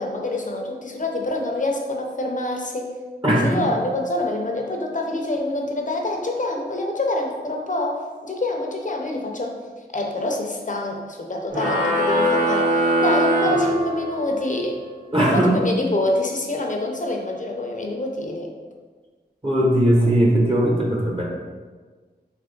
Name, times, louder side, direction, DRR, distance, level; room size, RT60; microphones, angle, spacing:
voice 1, 0.0-2.9 3.4-9.6 9.9-14.8 15.2-18.5, left 1 dB, 45° left, 1 dB, 0.7 m, -26 dB
voice 2, 3.2-3.6 15.1-15.7 19.4-21.2, right 1 dB, 30° right, -3 dB, 0.9 m, -18 dB
sound 1, 11.5-14.4, equal, 50° right, 1.4 m, -21 dB
3.5 x 3.0 x 3.8 m, 1.4 s
wide cardioid pair, 55°, 18 cm